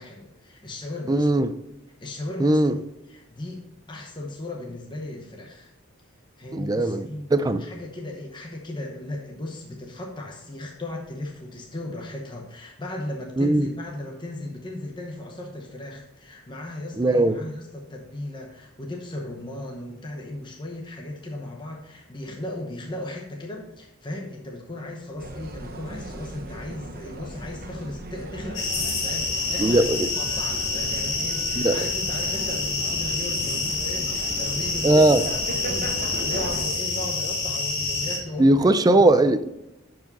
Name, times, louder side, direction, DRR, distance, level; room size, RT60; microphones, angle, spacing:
voice 1, 0.0-1.3 2.0-2.8 3.1-5.7 6.4-35.3 35.7-39.0, left 1 dB, 20° left, 0.9 m, -36 dB
voice 2, 1.1-1.5 2.4-2.8 6.5-7.7 13.4-13.7 17.0-17.3 29.6-30.0 31.6-31.8 34.8-35.2 38.4-39.5, right 2 dB, 20° right, 0.4 m, -19 dB
sound 1, 25.2-36.6, right 1 dB, 45° right, 0.9 m, -38 dB
sound 2, 28.5-38.2, left 3 dB, 55° left, 2.0 m, -27 dB
11.0 x 4.8 x 4.0 m
head